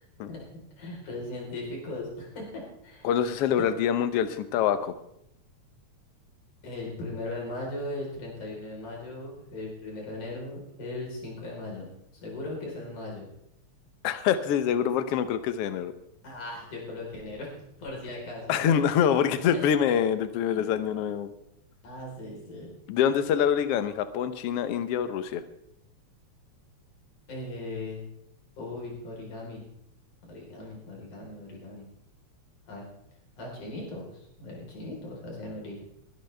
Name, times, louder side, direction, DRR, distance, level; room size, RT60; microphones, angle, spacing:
voice 1, 0.8-3.1 6.6-11.9 12.2-13.3 16.2-17.5 17.8-18.6 19.5-19.7 20.5-20.7 21.8-22.7 27.3-28.1 28.6-29.6 30.3-31.8 32.7-32.9 33.4-35.8, left 2 dB, 90° left, -2 dB, 5.7 m, -38 dB
voice 2, 3.0-4.9 14.0-15.9 18.5-21.3 22.9-25.4, left 8 dB, 65° left, 12 dB, 1.6 m, -25 dB
22.0 x 12.0 x 3.4 m, 0.78 s
omnidirectional pair, 3.4 m